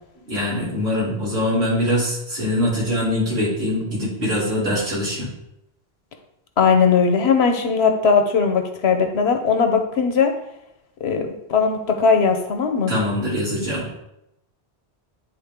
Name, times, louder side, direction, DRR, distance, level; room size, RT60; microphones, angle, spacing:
voice 1, 0.2-5.3 12.9-13.9, left 1 dB, 85° right, -7 dB, 3.0 m, -23 dB
voice 2, 6.6-10.3 11.0-12.9, left 5 dB, 80° left, 6 dB, 1.1 m, -19 dB
9.9 x 3.7 x 3.7 m, 0.83 s
omnidirectional pair, 1.1 m